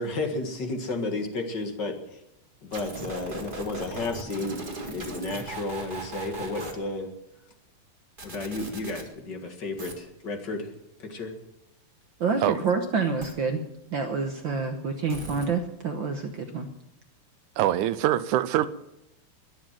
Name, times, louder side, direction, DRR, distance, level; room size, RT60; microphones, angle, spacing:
voice 1, 0.0-2.2 2.6-7.1 8.2-10.7 11.0-11.3, left 2 dB, 40° left, 5 dB, 2.1 m, -32 dB
sound 1, 2.7-6.7 8.2-9.0 9.8-9.9 13.2-13.3 15.1-15.5, right 2 dB, 20° right, 1.4 m, -38 dB
voice 2, 12.2-13.6 13.9-16.7, right 4 dB, 65° right, 5 dB, 1.2 m, -28 dB
voice 3, 17.6-18.7, right 13 dB, 85° right, 13 dB, 2.2 m, -23 dB
22.0 x 7.4 x 7.6 m, 0.84 s
omnidirectional pair, 3.5 m